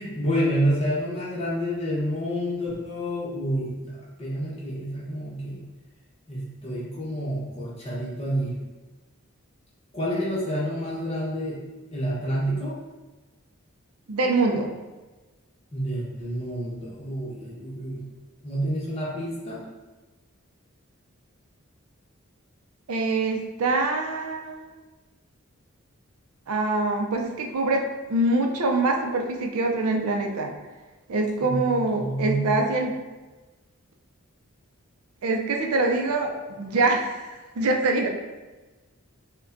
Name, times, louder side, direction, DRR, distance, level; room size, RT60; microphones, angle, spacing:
voice 1, 0.0-5.6 6.3-8.5 9.9-11.6 11.9-12.8 15.7-18.0 18.4-19.6 31.4-32.6, equal, 25° left, -7 dB, 0.9 m, -29 dB
voice 2, 14.1-14.7 22.9-24.7 26.5-30.5 31.1-32.9 35.2-37.3 37.6-38.1, right 2 dB, 80° right, 2 dB, 0.5 m, -24 dB
4.9 x 2.2 x 2.5 m, 1.2 s
head